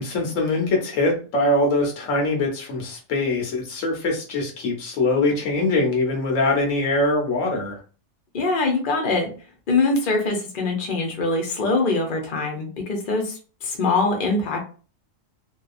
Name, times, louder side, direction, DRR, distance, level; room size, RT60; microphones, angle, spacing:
voice 1, 0.0-7.8, left 2 dB, 85° left, 1 dB, 1.2 m, -23 dB
voice 2, 8.3-9.3 9.7-14.6, left 3 dB, 45° left, 2 dB, 0.8 m, -23 dB
2.8 x 2.3 x 2.4 m, 0.37 s
omnidirectional pair, 1.3 m